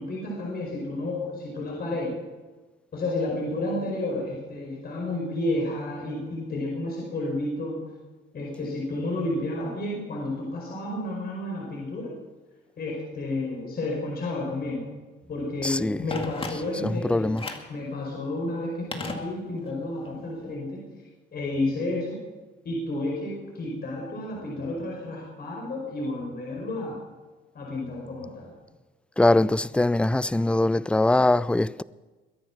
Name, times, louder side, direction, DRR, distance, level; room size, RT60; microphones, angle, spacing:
voice 1, 0.0-2.1 2.9-7.8 8.3-12.1 12.8-14.8 15.3-17.4 17.7-20.8 21.3-22.2 22.6-27.0 27.5-28.5, left 2 dB, 50° left, 5.0 m, -31 dB
voice 2, 15.6-16.0 16.8-17.4 29.2-31.8, left 2 dB, 5° left, 0.4 m, -22 dB
Telephone, 16.1-17.0 17.4-17.8 18.9-19.8 20.1-20.2, left 2 dB, 30° left, 2.1 m, -36 dB
22.5 x 10.5 x 6.0 m
cardioid pair, 90°, 20 cm